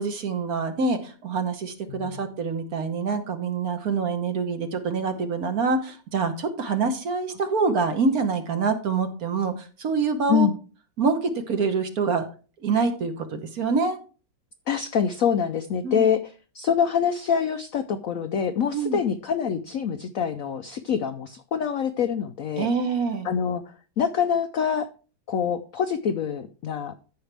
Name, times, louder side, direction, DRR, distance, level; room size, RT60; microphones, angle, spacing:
voice 1, 0.0-10.5 11.0-12.2 12.6-14.0 15.8-16.1 18.7-19.0 22.6-23.3, right 4 dB, 55° right, 7 dB, 1.4 m, -26 dB
voice 2, 1.9-2.3 6.7-6.8 10.3-10.5 14.7-22.7 23.2-24.9 25.3-26.9, left 7 dB, 80° left, 9 dB, 0.7 m, -25 dB
14.0 x 5.6 x 3.4 m, 0.37 s
omnidirectional pair, 2.1 m